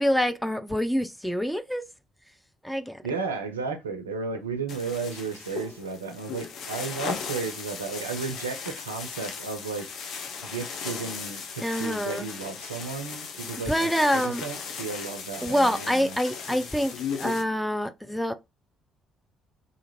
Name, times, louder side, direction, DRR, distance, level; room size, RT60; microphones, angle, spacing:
voice 1, 0.0-1.8 2.6-3.0 11.6-12.3 13.7-14.4 15.4-18.3, equal, 5° left, 0.4 m, -26 dB
voice 2, 3.0-9.9 10.4-16.2, right 4 dB, 80° right, 0.4 m, -34 dB
sound 1, 4.7-17.4, left 6 dB, 60° left, 0.5 m, -37 dB
2.5 x 2.4 x 3.0 m
figure-of-eight pair, 45°, 0 cm